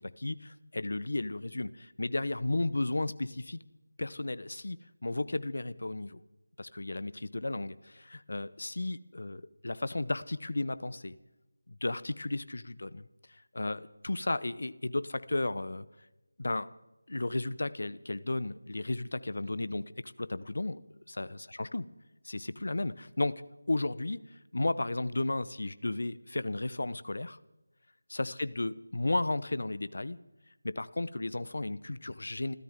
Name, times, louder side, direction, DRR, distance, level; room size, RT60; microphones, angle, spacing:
voice 1, 0.0-3.6 4.0-6.2 6.6-11.2 11.7-13.1 13.5-15.9 16.4-16.7 17.1-20.8 21.2-21.8 22.2-23.4 23.7-24.2 24.5-27.4 28.1-30.2 30.6-32.5, left 2 dB, 60° left, 16 dB, 1.0 m, -34 dB
29.0 x 13.0 x 3.8 m, 1.0 s
figure-of-eight pair, 170°, 0 cm